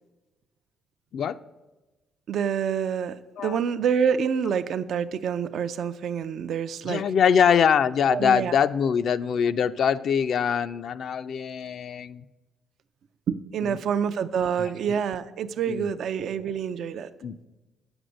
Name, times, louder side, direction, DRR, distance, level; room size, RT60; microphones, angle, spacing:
voice 1, 2.3-7.0 8.1-8.5 13.3-17.1, right 7 dB, 70° right, 12 dB, 0.4 m, -27 dB
voice 2, 6.8-12.2 13.6-13.8 14.6-14.7 15.7-15.9 17.2-17.4, left 7 dB, 65° left, 12 dB, 0.4 m, -23 dB
8.0 x 6.1 x 6.4 m, 1.1 s
cardioid pair, 90°, 0 cm